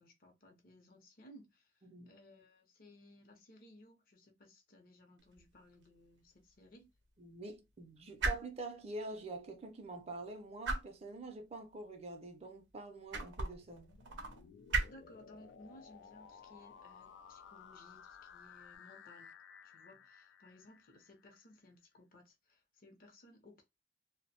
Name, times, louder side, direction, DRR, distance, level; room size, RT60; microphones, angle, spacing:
voice 1, 0.0-1.7 2.0-6.9 14.9-19.3 19.6-23.6, left 1 dB, 55° left, 0.6 m, -60 dB
voice 2, 1.8-2.1 7.2-13.9, right 2 dB, 35° right, 0.4 m, -46 dB
sound 1, 5.2-18.8, right 3 dB, 85° right, 0.5 m, -43 dB
sound 2, 13.6-21.4, left 7 dB, 85° left, 0.3 m, -57 dB
2.5 x 2.0 x 2.7 m
head